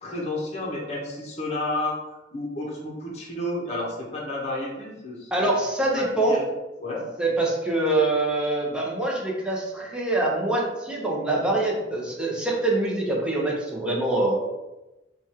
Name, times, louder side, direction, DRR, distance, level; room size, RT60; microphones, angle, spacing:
voice 1, 0.0-2.0 2.3-5.5 6.0-6.5 6.8-7.0, left 1 dB, 40° left, -3 dB, 0.8 m, -31 dB
voice 2, 5.3-6.4 7.2-14.4, right 2 dB, 5° right, -3 dB, 0.7 m, -24 dB
3.1 x 2.3 x 4.2 m, 1.0 s
head